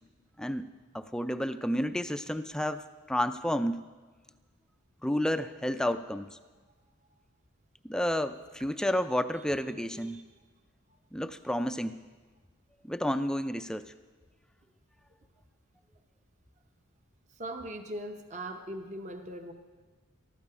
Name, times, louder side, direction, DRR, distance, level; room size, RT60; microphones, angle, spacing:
voice 1, 0.4-2.8 3.1-3.9 5.0-6.3 7.8-10.3 11.1-12.0 12.8-13.9, equal, 5° left, 10 dB, 0.4 m, -31 dB
voice 2, 9.9-10.2 17.3-19.5, right 1 dB, 35° right, 6 dB, 0.8 m, -40 dB
19.5 x 14.0 x 4.9 m, 1.4 s
head